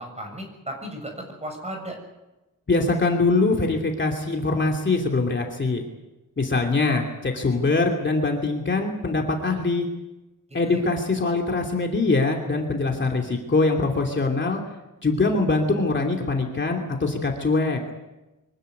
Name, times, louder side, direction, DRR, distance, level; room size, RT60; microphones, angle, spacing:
voice 1, 0.0-2.0 10.6-10.8, right 1 dB, 20° right, 3 dB, 6.8 m, -35 dB
voice 2, 2.7-5.8 6.4-9.9 10.5-14.6 15.0-17.8, left 3 dB, 35° left, 1 dB, 2.9 m, -23 dB
24.5 x 15.5 x 9.5 m, 1.0 s
wide cardioid pair, 140°, 33 cm